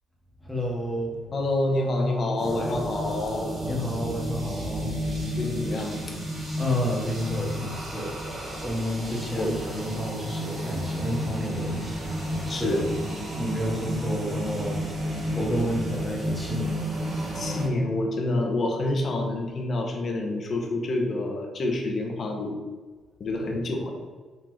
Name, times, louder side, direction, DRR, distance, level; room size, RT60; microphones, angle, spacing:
voice 1, 0.4-1.2 3.7-4.9 6.6-12.8 13.3-16.8 23.4-23.5, equal, 10° left, -3 dB, 1.2 m, -30 dB
voice 2, 1.3-3.5 5.4-6.0 9.4-9.6 12.5-12.8 17.3-22.6 23.2-23.9, left 2 dB, 50° left, 1 dB, 0.9 m, -27 dB
sound 1, 2.4-17.7, equal, 45° right, 1.1 m, -32 dB
3.8 x 3.6 x 3.1 m, 1.4 s
cardioid pair, 90°, 0 cm